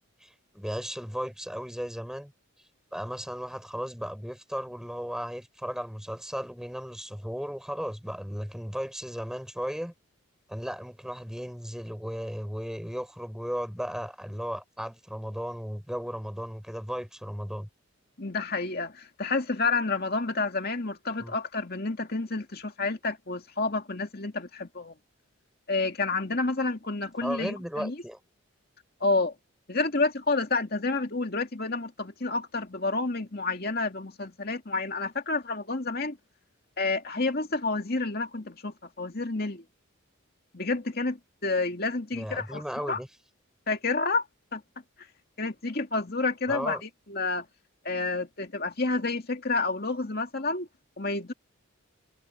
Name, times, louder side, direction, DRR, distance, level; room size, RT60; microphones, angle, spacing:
voice 1, 0.2-2.3 2.9-9.9 10.5-17.7 21.2-21.3 27.2-28.2 42.1-43.1 46.5-46.8, equal, 5° right, 4.5 m, -35 dB
voice 2, 18.2-24.9 25.7-28.0 29.0-29.3 29.7-36.2 36.8-39.6 40.5-43.0 43.7-44.2 44.5-44.6 45.4-47.4 47.8-50.7 51.0-51.3, left 3 dB, 45° left, 2.4 m, -29 dB
head